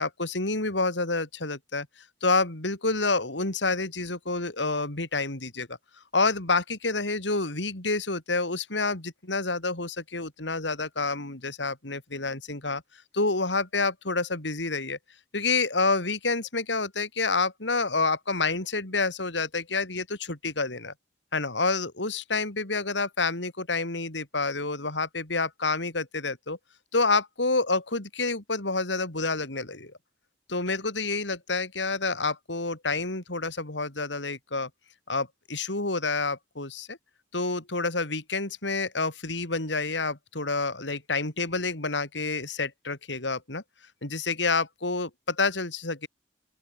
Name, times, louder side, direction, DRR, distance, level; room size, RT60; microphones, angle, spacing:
voice 1, 0.0-1.9 2.2-5.7 6.1-12.8 13.1-15.0 15.3-20.9 21.3-26.6 26.9-29.9 30.5-34.7 35.1-37.0 37.3-43.6 44.0-46.1, left 3 dB, 85° left, 4.0 m, -28 dB
open air
head